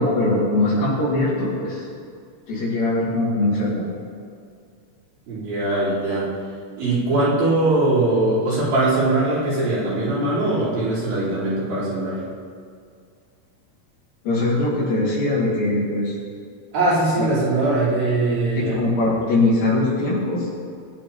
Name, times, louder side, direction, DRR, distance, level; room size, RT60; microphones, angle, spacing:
voice 1, 0.0-1.8 2.5-3.8 14.2-16.1 17.2-17.3 18.6-20.5, left 2 dB, 80° left, -10 dB, 4.6 m, -21 dB
voice 2, 5.3-6.3 6.8-12.2 16.7-18.8, right 2 dB, 80° right, -10 dB, 6.3 m, -21 dB
19.5 x 10.5 x 4.3 m, 2.3 s
omnidirectional pair, 4.1 m